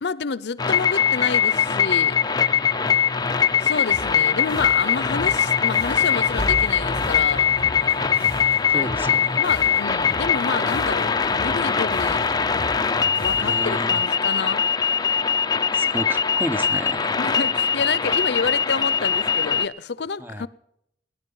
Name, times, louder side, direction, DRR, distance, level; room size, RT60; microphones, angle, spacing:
voice 1, 0.0-2.2 3.6-7.5 8.7-8.9 9.4-12.3 13.2-14.6 17.2-20.5, left 5 dB, 70° left, 0.6 m, -29 dB
sound 1, 0.6-19.7, left 7 dB, 25° left, 0.4 m, -21 dB
sound 2, 1.7-14.5, equal, 40° right, 4.8 m, -41 dB
sound 3, 3.9-13.8, left 1 dB, 55° right, 4.6 m, -39 dB
voice 2, 8.7-9.4 13.3-14.0 15.7-17.1 20.2-20.5, equal, 10° right, 0.7 m, -32 dB
18.5 x 10.5 x 5.4 m
head